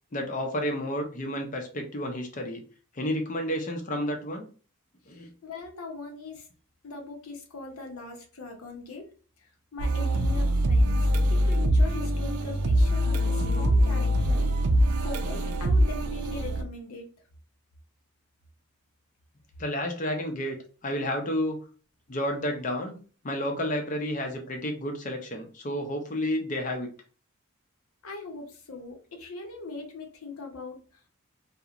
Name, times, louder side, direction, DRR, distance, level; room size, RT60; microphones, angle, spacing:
voice 1, 0.1-2.6 2.9-4.5 5.1-5.3 19.6-20.6 20.8-21.6 22.1-23.0 23.2-26.9, left 1 dB, 35° left, 4 dB, 0.5 m, -31 dB
voice 2, 5.1-6.5 6.8-9.1 9.4-14.5 15.0-17.1 28.0-31.1, left 3 dB, 75° left, 2 dB, 0.7 m, -41 dB
sound 1, 9.8-16.6, equal, 90° right, 0.4 m, -23 dB
2.8 x 2.1 x 2.4 m, 0.39 s
head